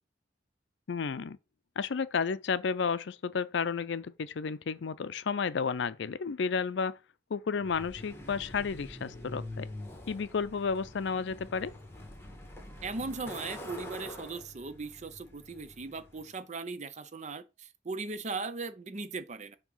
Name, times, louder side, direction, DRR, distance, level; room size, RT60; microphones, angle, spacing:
voice 1, 0.9-1.4 1.8-7.0 7.3-9.7 10.1-11.7, left 5 dB, 70° left, 0.5 m, -32 dB
Truck, 7.6-16.3, left 2 dB, 15° left, 1.4 m, -46 dB
voice 2, 12.8-19.6, right 3 dB, 40° right, 0.6 m, -38 dB
7.3 x 2.9 x 5.4 m
head